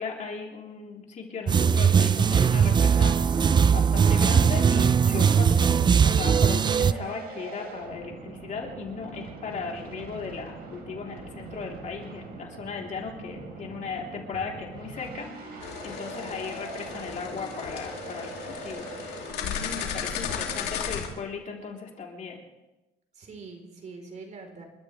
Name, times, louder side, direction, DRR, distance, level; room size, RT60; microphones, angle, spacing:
voice 1, 0.0-22.4, left 5 dB, 45° left, 0 dB, 3.7 m, -37 dB
sound 1, 1.5-6.9, right 7 dB, 25° right, 0.4 m, -20 dB
sound 2, 4.0-21.3, right 4 dB, 65° right, 4.3 m, -42 dB
sound 3, 15.6-21.1, left 8 dB, 80° left, 2.8 m, -35 dB
voice 2, 20.2-20.7 23.1-24.6, right 3 dB, 45° right, 3 dB, 4.1 m, -44 dB
29.5 x 13.0 x 3.4 m, 1.0 s
cardioid pair, 110°, 17 cm